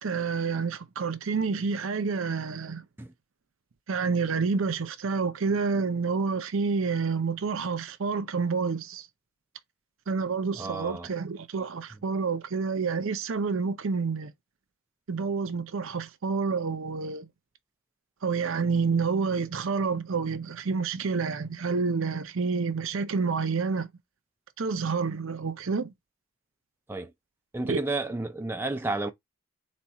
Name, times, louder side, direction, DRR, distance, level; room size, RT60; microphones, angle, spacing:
voice 1, 0.0-2.9 3.9-9.1 10.1-14.3 15.1-17.3 18.2-23.9 24.6-25.9 27.6-27.8, right 5 dB, 65° right, 0.6 m, -28 dB
voice 2, 10.6-11.1 26.9-27.1 27.5-29.1, right 2 dB, 10° right, 0.4 m, -31 dB
4.2 x 2.3 x 4.2 m
head